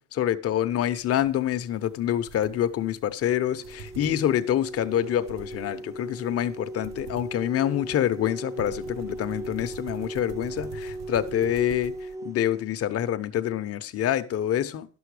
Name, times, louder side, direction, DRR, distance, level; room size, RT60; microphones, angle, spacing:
voice 1, 0.0-15.0, left 11 dB, 50° left, 0.8 m, -26 dB
sound 1, 1.2-12.1, right 5 dB, 55° right, 1.0 m, -46 dB
sound 2, 3.5-12.6, right 1 dB, 10° right, 0.4 m, -38 dB
11.5 x 7.1 x 4.9 m
cardioid pair, 125°, 32 cm